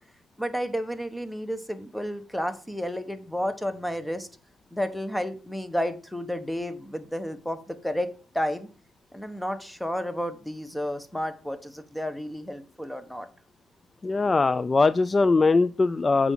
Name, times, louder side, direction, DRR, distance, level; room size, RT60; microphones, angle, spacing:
voice 1, 0.4-4.3 4.7-8.1 8.3-8.7 9.1-13.3, equal, 5° left, 10 dB, 1.0 m, -31 dB
voice 2, 14.0-16.3, left 3 dB, 30° left, 15 dB, 0.3 m, -21 dB
8.0 x 4.8 x 5.6 m, 0.40 s
cardioid pair, 90°, 0 cm